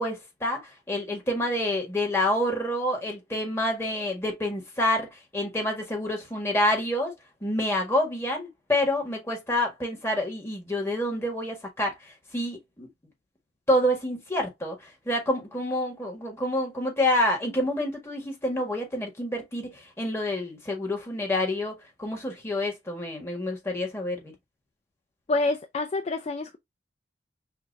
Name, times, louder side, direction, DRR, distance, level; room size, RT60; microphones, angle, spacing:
voice 1, 0.0-7.1 7.4-11.9 12.3-12.9 13.7-24.3, left 1 dB, 15° left, 1.6 m, -28 dB
voice 2, 25.3-26.6, left 2 dB, 35° left, 0.4 m, -27 dB
5.8 x 2.5 x 2.6 m
head